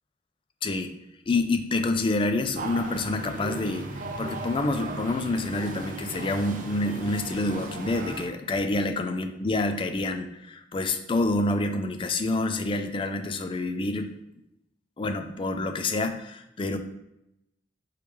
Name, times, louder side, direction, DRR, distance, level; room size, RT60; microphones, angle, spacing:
voice 1, 0.6-0.9 1.3-14.1 15.0-16.8, left 2 dB, 25° left, 7 dB, 0.3 m, -27 dB
sound 1, 2.6-8.3, right 2 dB, 45° right, 0.5 m, -37 dB
4.7 x 3.1 x 3.4 m, 0.85 s
head